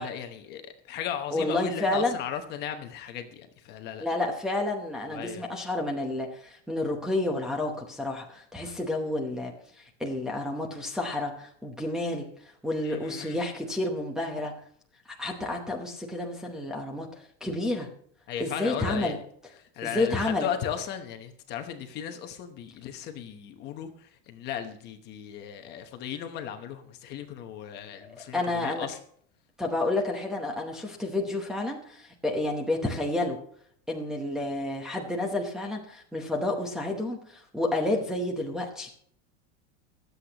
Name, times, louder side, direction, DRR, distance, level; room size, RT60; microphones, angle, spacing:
voice 1, 0.0-4.1 5.1-5.4 12.8-13.4 18.3-19.2 19.6-29.0, left 9 dB, 30° left, 1.0 m, -36 dB
voice 2, 1.3-2.2 4.0-9.5 9.8-12.3 12.6-14.5 15.1-17.9 18.4-19.2 19.8-20.5 28.3-28.9 29.6-33.4 33.9-38.9, left 2 dB, ahead, 0.8 m, -30 dB
23.5 x 8.1 x 2.9 m
supercardioid pair, 170°, 34 cm